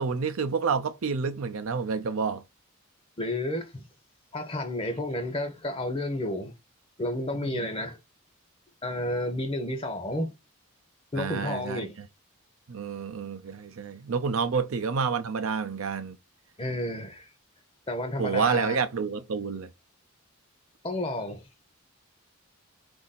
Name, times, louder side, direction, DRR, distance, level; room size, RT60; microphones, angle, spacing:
voice 1, 0.0-2.4 7.4-7.7 11.2-11.8 12.7-16.2 18.2-19.7, right 5 dB, 70° right, 0.5 m, -29 dB
voice 2, 3.2-3.8 4.3-6.5 7.0-8.0 8.8-10.3 11.1-12.0 16.6-17.3 17.9-18.8 20.8-21.4, left 1 dB, 25° left, 0.7 m, -31 dB
4.0 x 2.6 x 4.0 m
head